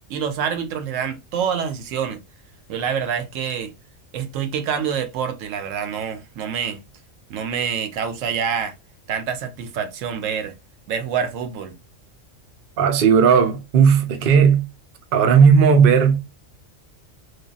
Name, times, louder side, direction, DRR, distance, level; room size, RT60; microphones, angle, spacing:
voice 1, 0.1-2.2 2.7-3.7 4.1-6.8 7.3-8.8 9.1-10.6 10.9-11.8, right 7 dB, 75° right, 0.9 m, -26 dB
voice 2, 12.8-14.7 15.1-16.2, right 6 dB, 60° right, 0.6 m, -15 dB
3.2 x 2.2 x 2.4 m
omnidirectional pair, 1.3 m